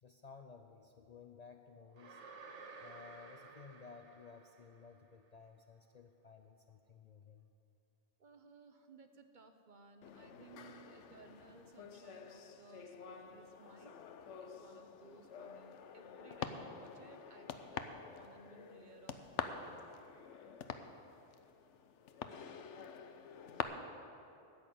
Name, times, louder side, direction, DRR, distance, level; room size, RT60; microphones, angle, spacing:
voice 1, 0.0-2.3 2.8-7.5, left 5 dB, 50° left, 6 dB, 0.5 m, -56 dB
sound 1, 2.0-5.1, right 4 dB, 75° right, 1.3 m, -54 dB
voice 2, 8.2-14.0 14.4-17.9 18.1-19.9 23.4-23.9, right 4 dB, 50° right, 7 dB, 0.8 m, -60 dB
sound 2, 10.0-23.6, left 7 dB, 85° left, 1.0 m, -47 dB
13.0 x 6.4 x 9.2 m, 2.7 s
omnidirectional pair, 1.2 m